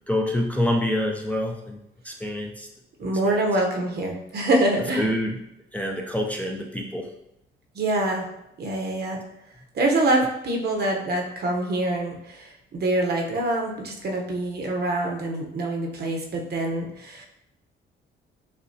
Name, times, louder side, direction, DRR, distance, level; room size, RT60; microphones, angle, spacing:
voice 1, 0.1-1.8 2.0-2.7 3.2-3.4 5.0-5.4 5.7-7.1, left 1 dB, 5° left, 0 dB, 0.5 m, -26 dB
voice 2, 3.0-5.1 7.7-8.3 8.6-9.2 9.7-17.2, right 1 dB, 55° right, 1 dB, 0.9 m, -25 dB
6.7 x 2.2 x 2.7 m, 0.84 s
cardioid pair, 90°, 20 cm